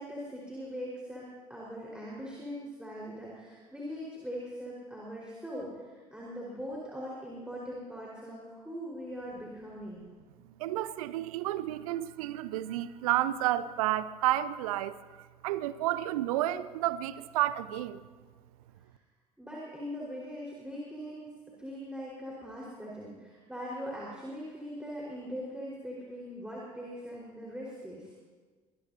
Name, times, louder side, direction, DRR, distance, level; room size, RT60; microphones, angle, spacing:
voice 1, 0.0-10.0 19.4-21.3 21.6-28.1, equal, 5° right, 4.8 m, -41 dB
voice 2, 10.6-14.9 15.4-18.0, right 14 dB, 70° right, 0.7 m, -31 dB
25.0 x 20.0 x 2.8 m
figure-of-eight pair, 55°, 19 cm